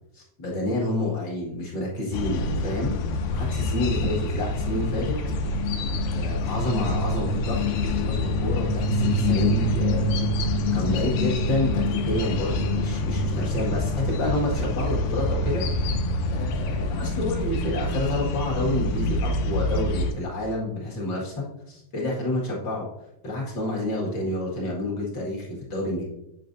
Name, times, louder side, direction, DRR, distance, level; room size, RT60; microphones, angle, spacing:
voice 1, 0.1-2.9 3.3-5.1 6.1-7.7 8.0-10.2 10.7-15.6 16.3-22.9 23.2-26.0, left 1 dB, 40° left, -4 dB, 1.8 m, -29 dB
sound 1, 2.1-20.1, left 2 dB, 80° left, 2.0 m, -26 dB
8.3 x 5.5 x 2.6 m, 0.84 s
omnidirectional pair, 3.9 m